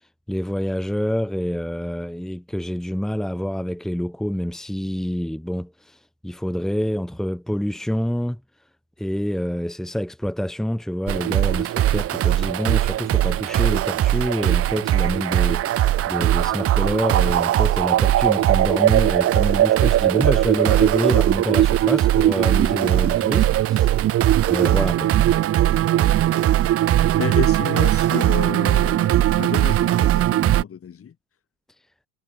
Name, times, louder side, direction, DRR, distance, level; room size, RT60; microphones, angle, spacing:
voice 1, 0.3-8.4 9.0-23.9 24.5-25.2, equal, ahead, 2.5 m, -27 dB
sound 1, 11.1-30.6, right 13 dB, 30° right, 0.7 m, -19 dB
voice 2, 27.2-31.2, left 8 dB, 30° left, 3.8 m, -31 dB
supercardioid pair, 110°, 46 cm